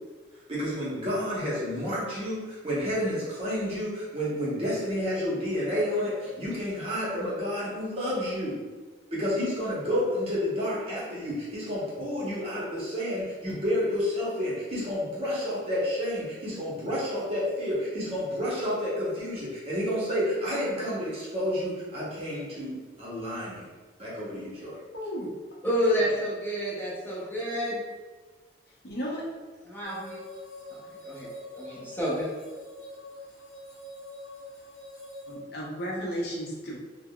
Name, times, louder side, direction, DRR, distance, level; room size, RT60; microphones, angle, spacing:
voice 1, 0.5-8.6 9.1-23.7 24.0-24.8, equal, 30° right, 0.8 m, -30 dB
voice 2, 24.9-25.3 28.8-29.2 35.3-36.8, equal, 60° left, 0.6 m, -34 dB
voice 3, 25.6-27.8 29.7-30.2 30.7-31.3 31.5-32.3, equal, 10° left, 0.7 m, -29 dB
sound 1, 29.8-35.3, left 1 dB, 35° left, 0.9 m, -45 dB
3.5 x 2.1 x 2.2 m
head